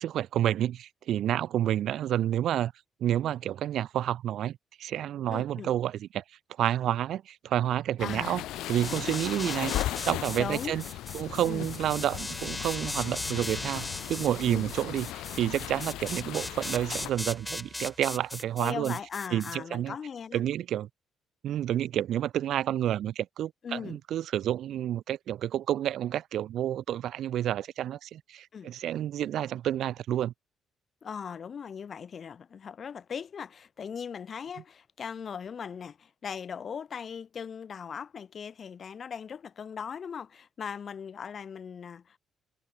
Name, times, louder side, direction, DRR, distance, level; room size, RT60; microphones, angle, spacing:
voice 1, 0.0-2.7 3.0-6.2 6.6-8.4 8.7-9.8 10.0-10.8 11.1-19.0 19.3-19.9 20.3-20.9 21.4-30.3, right 11 dB, 70° right, 0.5 m, -29 dB
voice 2, 5.3-5.7 8.0-9.1 9.4-9.5 10.4-10.8 11.4-11.7 14.5-14.7 18.6-20.4 23.6-24.0 28.5-28.7 31.0-42.2, left 7 dB, 50° left, 2.9 m, -39 dB
sound 1, 8.0-17.1, left 15 dB, 85° left, 0.5 m, -37 dB
sound 2, 8.5-19.6, left 2 dB, 15° left, 4.1 m, -39 dB
cardioid pair, 85°, 0 cm